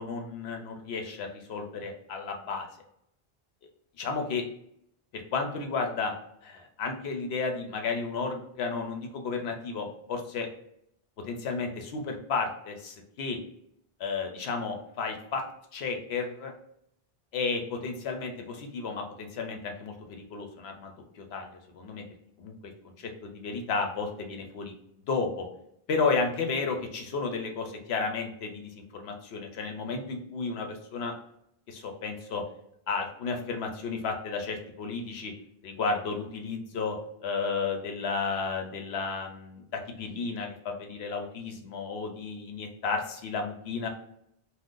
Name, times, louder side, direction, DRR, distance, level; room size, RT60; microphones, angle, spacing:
voice 1, 0.0-2.7 4.0-4.4 5.1-6.2 6.4-10.5 11.3-13.4 14.0-15.4 15.7-16.5 17.3-22.0 22.4-22.7 23.0-24.7 25.1-25.5 25.9-31.1 31.7-32.4 32.9-35.3 35.6-37.0 37.2-43.9, left 4 dB, 90° left, 4 dB, 0.9 m, -33 dB
2.5 x 2.3 x 3.6 m, 0.74 s
omnidirectional pair, 1.0 m